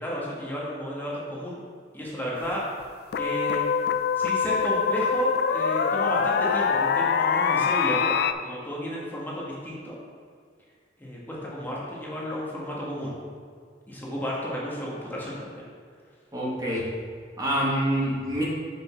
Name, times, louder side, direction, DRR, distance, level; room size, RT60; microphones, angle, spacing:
voice 1, 0.0-1.6 1.9-2.6 3.2-3.6 4.1-8.1 8.4-10.0 11.0-13.1 13.9-15.6, equal, 10° left, -6 dB, 1.4 m, -32 dB
sound 1, 2.5-2.6 3.1-8.3, left 6 dB, 60° left, 0.3 m, -24 dB
voice 2, 16.3-16.9 17.4-18.4, right 1 dB, 20° right, -5 dB, 1.3 m, -26 dB
6.0 x 5.1 x 5.7 m, 2.1 s
head